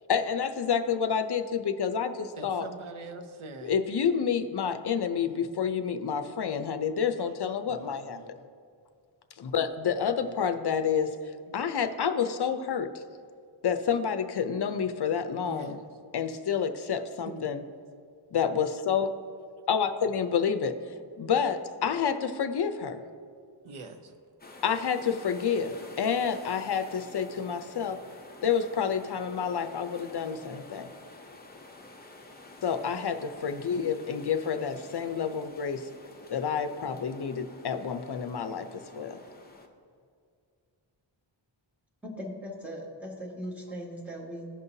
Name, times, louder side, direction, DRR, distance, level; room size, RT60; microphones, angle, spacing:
voice 1, 0.1-2.7 3.6-8.2 9.4-11.2 11.5-12.9 13.6-15.8 16.1-17.6 18.3-19.1 19.7-20.7 21.2-23.0 24.6-28.0 28.4-30.9 32.6-35.8 36.3-38.7 38.9-39.2, left 7 dB, 55° left, 8 dB, 0.6 m, -29 dB
voice 2, 2.4-3.7 5.1-5.6 7.7-8.3 10.2-10.4 11.5-11.6 15.4-15.8 16.8-16.9 17.3-17.5 23.6-24.1, right 3 dB, 90° right, 6 dB, 0.8 m, -44 dB
sound 1, 24.4-39.7, left 2 dB, 20° left, 0.7 m, -50 dB
voice 3, 42.0-44.5, equal, 5° right, -4 dB, 1.7 m, -39 dB
15.5 x 5.4 x 2.7 m, 2.2 s
wide cardioid pair, 100°, 48 cm